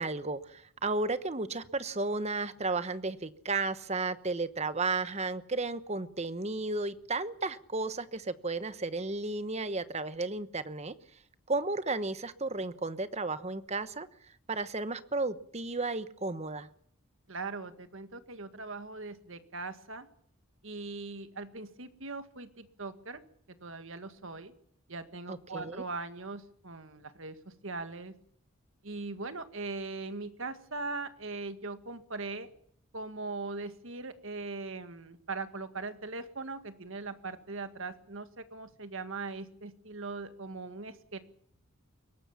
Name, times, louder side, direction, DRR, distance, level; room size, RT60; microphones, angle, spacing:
voice 1, 0.0-10.9 11.5-14.1 14.5-16.7 25.3-25.8, right 3 dB, 30° right, 13 dB, 1.0 m, -33 dB
voice 2, 17.3-20.1 20.6-23.2 23.6-24.5 24.9-27.4 27.6-28.1 28.8-32.5 32.9-41.2, right 3 dB, 65° right, 10 dB, 1.9 m, -40 dB
22.5 x 18.5 x 7.2 m, 0.65 s
head